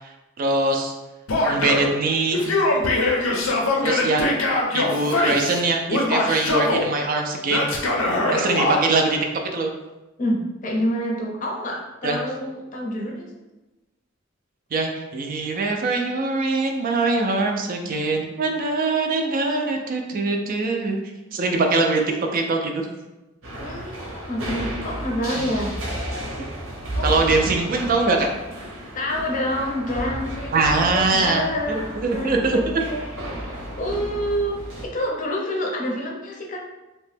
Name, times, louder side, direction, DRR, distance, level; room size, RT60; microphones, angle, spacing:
voice 1, 0.4-0.9 1.5-2.4 3.8-4.3 4.7-7.7 8.3-9.2 9.5-9.7 12.0-12.2 14.7-21.0 21.3-22.0 22.3-22.9 25.4-25.5 27.0-28.3 30.5-32.8, right 3 dB, 45° right, 3 dB, 0.3 m, -22 dB
Male speech man speaking / Yell, 1.3-1.9 2.3-5.6 5.9-6.9 7.5-8.8, left 2 dB, 80° left, 0.6 m, -22 dB
voice 2, 10.2-13.3 23.6-25.8 26.9-27.1 28.9-36.6, equal, 40° left, -1 dB, 0.5 m, -28 dB
sound 1, 23.4-34.9, right 1 dB, 80° right, 0.9 m, -32 dB
2.8 x 2.1 x 3.2 m, 1.1 s
head